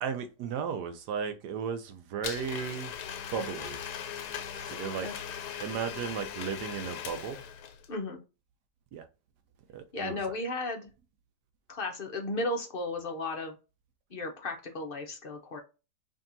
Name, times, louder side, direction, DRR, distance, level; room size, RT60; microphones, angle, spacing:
voice 1, 0.0-2.9 3.3-3.8 4.7-5.1 5.6-7.4 8.9-9.0 9.7-10.2, right 7 dB, 75° right, 1.2 m, -35 dB
Domestic sounds home sounds, 2.2-7.9, left 8 dB, 70° left, 1.1 m, -39 dB
voice 2, 7.9-8.2 9.9-10.9 11.7-13.6 14.1-15.6, left 2 dB, 55° left, 0.6 m, -34 dB
5.1 x 2.7 x 2.6 m
omnidirectional pair, 1.8 m